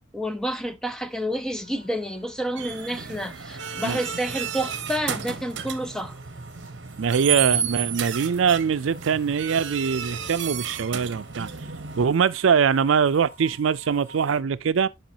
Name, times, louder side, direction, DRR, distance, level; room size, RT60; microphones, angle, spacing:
voice 1, 0.0-6.1, equal, 5° left, 0.7 m, -29 dB
sound 1, 1.5-14.4, right 1 dB, 15° right, 4.1 m, -51 dB
sound 2, 2.6-12.0, right 8 dB, 60° right, 0.9 m, -32 dB
voice 2, 7.0-11.5 12.0-14.9, right 6 dB, 80° right, 0.4 m, -22 dB
10.0 x 5.5 x 2.8 m
head